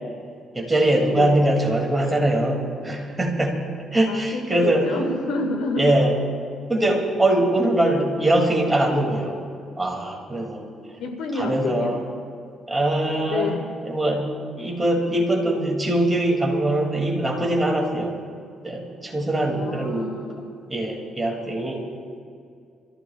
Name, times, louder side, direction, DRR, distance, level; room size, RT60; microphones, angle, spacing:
voice 1, 0.5-4.9 5.8-6.1 6.7-9.4 9.8-10.6 11.4-12.0 12.7-13.5 13.9-18.1 18.6-20.2 20.7-21.9, right 1 dB, 15° right, 0 dB, 3.0 m, -22 dB
voice 2, 1.1-1.4 4.1-6.0 11.0-11.9 13.3-13.7 19.4-20.5, left 3 dB, 90° left, 3 dB, 2.1 m, -28 dB
25.5 x 15.0 x 2.6 m, 2.4 s
cardioid pair, 90°, 0 cm